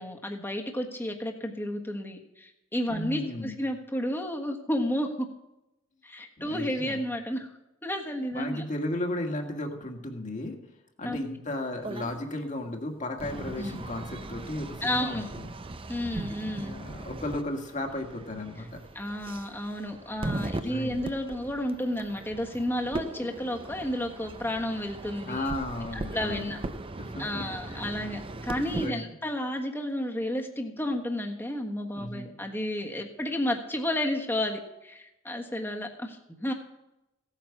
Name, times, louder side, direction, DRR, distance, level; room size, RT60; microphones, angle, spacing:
voice 1, 0.0-5.3 6.0-7.5 7.8-8.6 11.0-11.2 13.6-13.8 14.8-15.3 15.9-16.8 18.9-25.5 26.1-26.6 27.2-36.5, left 1 dB, 10° left, 2 dB, 1.5 m, -32 dB
voice 2, 2.9-3.6 6.4-7.0 8.3-10.6 11.0-15.5 16.6-18.8 20.5-21.0 25.2-26.5 27.0-28.0 28.7-29.1 31.9-32.3, left 1 dB, 35° left, 3 dB, 1.9 m, -35 dB
sound 1, 11.8-12.2 13.2-28.9, right 2 dB, 25° right, 0.6 m, -39 dB
16.5 x 9.0 x 6.0 m, 0.91 s
head